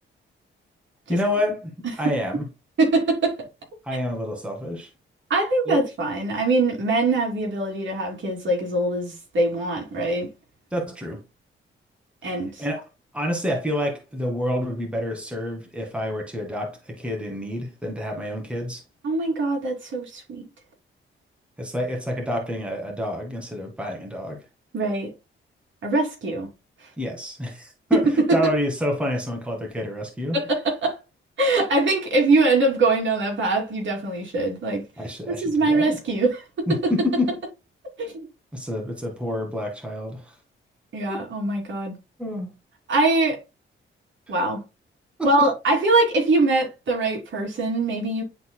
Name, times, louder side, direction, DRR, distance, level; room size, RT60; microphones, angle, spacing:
voice 1, 1.1-1.7 2.0-2.5 3.9-4.9 5.7-5.8 10.7-11.2 12.6-12.9 13.1-18.8 21.6-24.4 27.0-30.4 35.0-36.0 36.7-37.3 38.5-40.4 41.1-41.2 42.2-42.5 45.2-45.5, left 1 dB, 5° right, 1.8 m, -28 dB
voice 2, 2.8-3.3 5.3-10.3 12.2-12.6 19.0-20.5 24.7-25.1 25.8-26.5 27.9-28.0 28.3-28.5 30.3-31.0 31.4-34.8 35.3-36.9 38.0-38.3 40.9-41.9 42.9-43.4 44.3-44.6 45.2-48.2, right 2 dB, 65° right, 2.8 m, -22 dB
10.5 x 4.0 x 2.2 m
cardioid pair, 120°, 21 cm